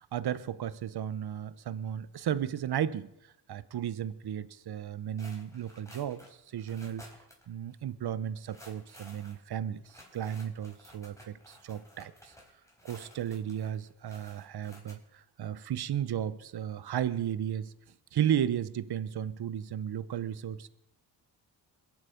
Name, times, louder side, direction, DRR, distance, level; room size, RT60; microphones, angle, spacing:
voice 1, 0.0-3.1 3.5-6.2 6.5-7.0 7.5-12.3 12.8-17.7 18.1-20.7, right 10 dB, 60° right, 0.9 m, -34 dB
sound 1, 5.2-7.5 7.7-7.8 8.4-14.9, equal, 5° left, 4.5 m, -55 dB
22.0 x 8.1 x 5.2 m
cardioid pair, 60°, 45 cm